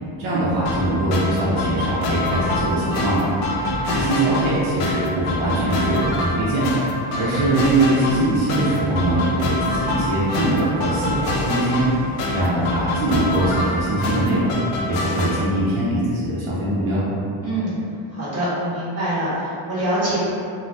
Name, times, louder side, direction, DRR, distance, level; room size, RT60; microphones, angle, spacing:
voice 1, 0.2-3.2 3.9-6.7 7.1-11.8 12.3-14.5 14.9-17.0, right 2 dB, 70° right, -8 dB, 0.8 m, -22 dB
sound 1, 0.7-15.4, left 2 dB, 85° left, 0.5 m, -26 dB
voice 2, 3.6-4.1 17.4-17.8 18.1-20.2, right 1 dB, 30° right, -11 dB, 1.2 m, -25 dB
2.6 x 2.3 x 3.3 m, 2.6 s
cardioid pair, 145°, 49 cm